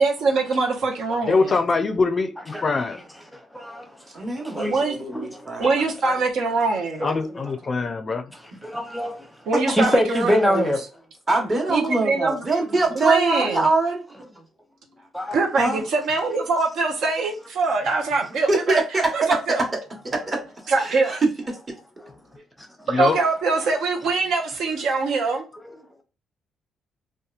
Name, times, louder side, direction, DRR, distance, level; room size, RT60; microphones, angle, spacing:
voice 1, 0.0-1.5 4.6-5.0 5.6-7.1 9.5-10.7 11.7-12.4 12.9-13.6 15.3-18.8 19.1-19.7 20.7-21.2 22.9-25.4, right 3 dB, 80° right, 0.7 m, -23 dB
voice 2, 1.3-3.0 5.6-5.7 7.0-8.3 22.9-23.2, left 4 dB, 35° left, 0.4 m, -23 dB
voice 3, 3.5-3.9 4.4-4.7 5.1-5.7 6.0-6.2 7.0-7.1 8.6-9.3 9.7-10.8 15.1-15.4 22.0-22.1 25.6-25.8, equal, 5° left, 0.7 m, -24 dB
voice 4, 4.1-5.7 11.3-14.0 15.6-15.8 18.5-19.3 20.3-20.4 20.8-21.3 22.4-22.5, right 3 dB, 35° right, 1.0 m, -23 dB
2.8 x 2.2 x 2.4 m
cardioid pair, 90°, 0 cm